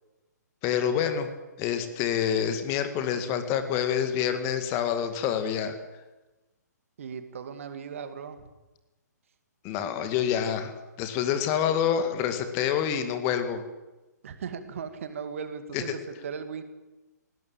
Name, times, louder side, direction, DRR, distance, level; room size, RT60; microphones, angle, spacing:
voice 1, 0.6-1.3 1.6-5.8 9.6-10.7 11.0-13.6 15.7-16.0, left 9 dB, 25° left, 9 dB, 2.1 m, -27 dB
voice 2, 7.0-8.4 14.2-16.6, right 6 dB, 50° right, 9 dB, 2.3 m, -37 dB
20.0 x 18.0 x 8.8 m, 1.1 s
figure-of-eight pair, 125°, 10 cm